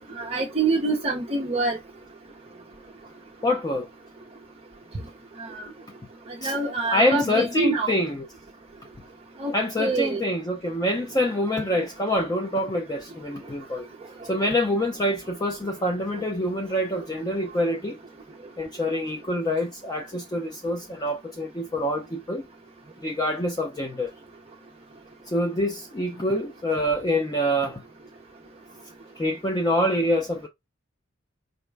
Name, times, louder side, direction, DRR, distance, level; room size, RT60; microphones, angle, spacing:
voice 1, 0.2-1.8 5.4-5.6 6.4-7.9 9.4-9.5 9.8-10.2, right 3 dB, 30° right, 0.6 m, -25 dB
voice 2, 3.4-3.9 6.4-6.5 6.9-8.3 9.5-13.9 14.2-18.0 18.6-22.5 23.0-24.1 25.3-27.8 29.2-30.5, left 1 dB, 20° left, 0.4 m, -26 dB
5.2 x 2.2 x 3.3 m
head